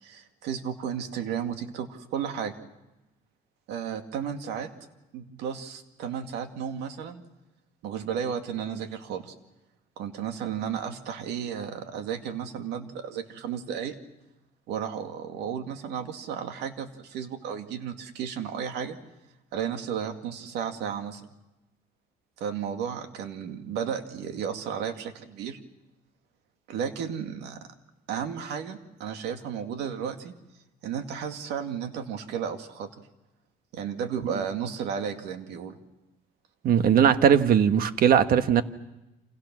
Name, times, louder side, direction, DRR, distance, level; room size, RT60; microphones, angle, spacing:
voice 1, 0.0-2.5 3.7-4.7 5.1-7.2 7.8-9.3 10.0-13.9 14.7-19.0 19.5-21.2 22.4-25.6 26.7-27.7 28.1-30.4 30.8-32.9 33.7-35.8, right 8 dB, 85° right, 7 dB, 2.2 m, -33 dB
voice 2, 36.6-38.6, right 8 dB, 60° right, 10 dB, 1.4 m, -19 dB
29.5 x 27.0 x 6.2 m, 0.97 s
cardioid pair, 110°, 17 cm